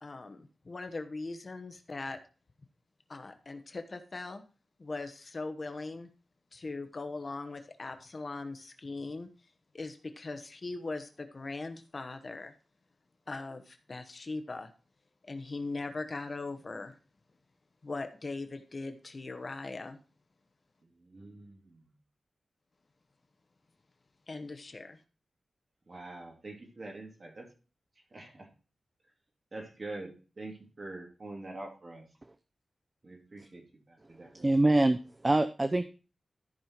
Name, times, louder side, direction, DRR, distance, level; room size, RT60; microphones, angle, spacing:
voice 1, 0.0-2.2 3.1-4.4 4.8-6.1 6.5-9.3 9.7-12.5 13.3-14.7 15.2-17.0 17.8-20.0 24.3-25.0, left 3 dB, 35° left, 7 dB, 1.1 m, -40 dB
voice 2, 21.0-21.8 25.9-27.5 28.1-28.5 29.5-32.1 33.0-34.5, right 2 dB, 35° right, 1 dB, 2.8 m, -45 dB
voice 3, 34.4-35.8, right 2 dB, 20° right, 10 dB, 0.5 m, -25 dB
13.5 x 5.5 x 4.5 m, 0.35 s
wide cardioid pair, 160°, 0 cm